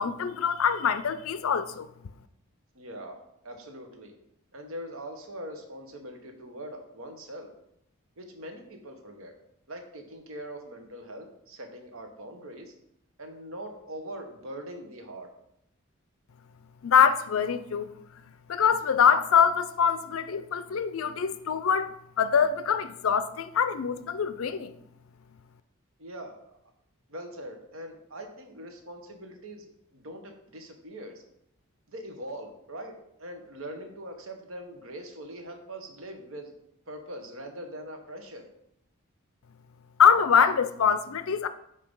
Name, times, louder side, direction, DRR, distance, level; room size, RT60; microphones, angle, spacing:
voice 1, 0.0-1.9 16.8-17.9 18.5-24.7 40.0-41.5, left 7 dB, 65° left, 0.4 m, -24 dB
voice 2, 2.7-4.1 4.5-7.5 8.2-9.3 9.7-12.7 13.2-15.3 26.0-26.5 27.1-31.2 31.9-36.5 36.9-38.4, right 1 dB, 65° right, 1.1 m, -42 dB
8.4 x 2.8 x 5.3 m
head